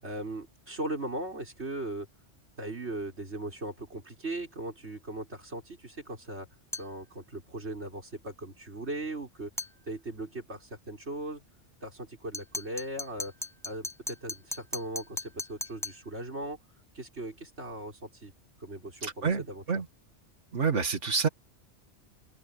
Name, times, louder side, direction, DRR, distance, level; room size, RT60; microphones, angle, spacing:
voice 1, 0.0-2.1 2.6-6.5 6.8-9.5 9.8-11.4 11.8-13.3 13.6-16.6 16.9-18.3 18.6-19.8, right 1 dB, 65° right, 5.9 m, -38 dB
sound 1, 6.7-7.0 9.6-9.8 12.3-16.1, left 1 dB, ahead, 1.5 m, -38 dB
voice 2, 19.0-19.4 19.7-19.8 20.5-21.3, right 5 dB, 85° right, 2.4 m, -27 dB
open air
omnidirectional pair, 1.2 m